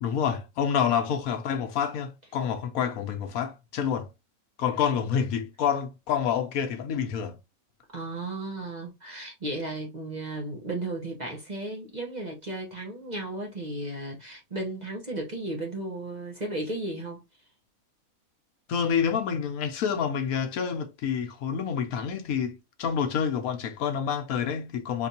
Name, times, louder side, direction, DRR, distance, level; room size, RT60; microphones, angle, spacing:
voice 1, 0.0-4.1 4.6-7.4 18.7-25.1, left 7 dB, 75° left, 1.1 m, -28 dB
voice 2, 7.9-17.2, right 2 dB, 35° right, 0.9 m, -34 dB
4.9 x 2.6 x 2.7 m
omnidirectional pair, 1.6 m